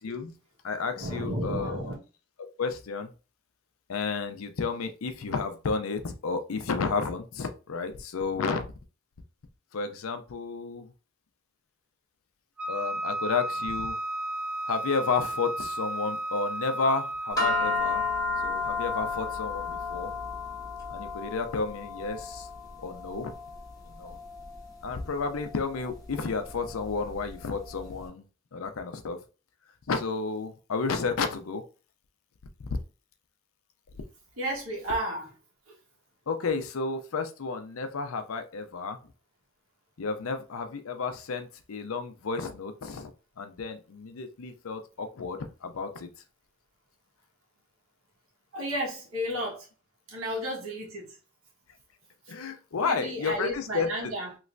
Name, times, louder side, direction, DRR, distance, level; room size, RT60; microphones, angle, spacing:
voice 1, 0.0-0.3 0.6-1.8 2.4-3.1 3.9-8.6 9.7-10.9 12.7-14.0 14.7-18.0 18.4-20.1 20.9-22.5 22.8-23.3 23.9-24.2 24.8-28.2 28.5-29.2 29.9-31.6 36.3-39.0 40.0-43.1 43.4-46.1 52.3-54.1, left 4 dB, 85° left, 0.5 m, -32 dB
voice 2, 1.0-1.9 34.4-35.3 35.7-35.8 48.5-49.7 50.1-51.1 52.8-54.3, equal, 90° right, 1.4 m, -32 dB
Wind instrument woodwind instrument, 12.6-17.8, right 1 dB, 5° right, 0.4 m, -33 dB
sound 1, 17.4-27.8, left 4 dB, 15° left, 0.8 m, -33 dB
3.2 x 3.0 x 2.5 m
head